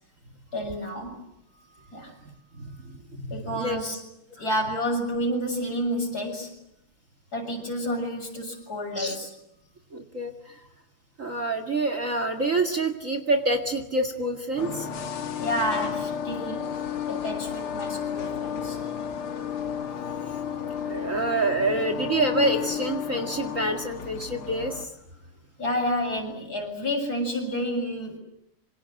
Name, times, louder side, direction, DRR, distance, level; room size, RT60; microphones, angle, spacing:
voice 1, 0.5-1.2 1.6-2.1 3.3-4.0 4.3-6.5 7.3-9.3 15.4-16.7 17.1-18.8 25.6-28.2, equal, 45° left, 3 dB, 7.6 m, -30 dB
voice 2, 2.6-3.8 8.9-9.2 9.9-10.6 11.2-14.9 20.3-20.4 20.8-24.9, right 2 dB, 35° right, 8 dB, 2.4 m, -27 dB
sound 1, 14.6-24.9, left 8 dB, 75° left, 2.6 m, -32 dB
28.0 x 26.5 x 7.8 m, 0.79 s
omnidirectional pair, 2.4 m